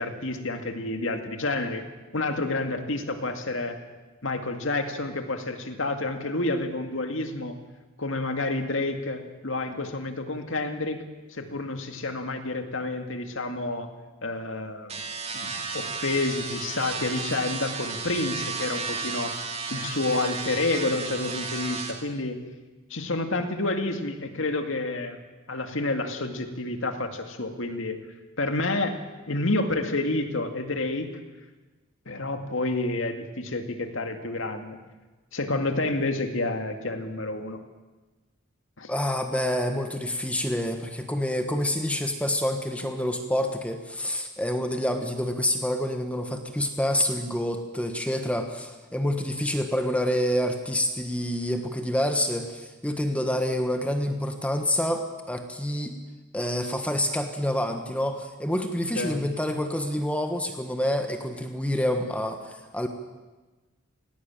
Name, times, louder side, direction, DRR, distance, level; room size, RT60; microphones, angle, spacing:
voice 1, 0.0-1.9 2.1-3.8 4.2-7.6 8.0-11.0 11.3-13.9 14.2-15.0 15.3-19.4 19.7-22.4 22.9-25.2 25.5-28.0 28.4-29.0 29.3-31.1 32.1-34.8 35.3-37.6 38.8-38.9 59.0-59.2, left 2 dB, 70° left, 6 dB, 2.1 m, -29 dB
sound 1, 14.9-21.9, right 4 dB, 30° right, 2.4 m, -33 dB
voice 2, 38.9-55.9 56.3-62.9, left 1 dB, 5° left, 6 dB, 1.3 m, -27 dB
18.0 x 18.0 x 8.9 m, 1.2 s
head